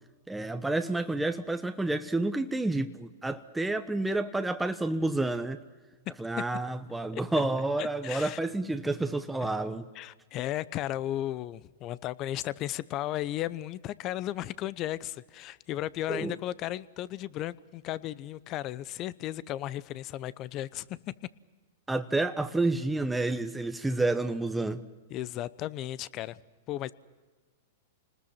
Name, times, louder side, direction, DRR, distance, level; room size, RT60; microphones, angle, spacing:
voice 1, 0.3-5.6 6.2-9.9 16.1-16.4 21.9-24.8, right 2 dB, 5° right, 1.1 m, -29 dB
voice 2, 7.8-8.4 9.4-9.5 9.9-21.0 25.1-26.4 26.7-26.9, left 14 dB, 40° left, 0.8 m, -35 dB
29.0 x 20.0 x 5.9 m
hypercardioid pair, 120°, 0 cm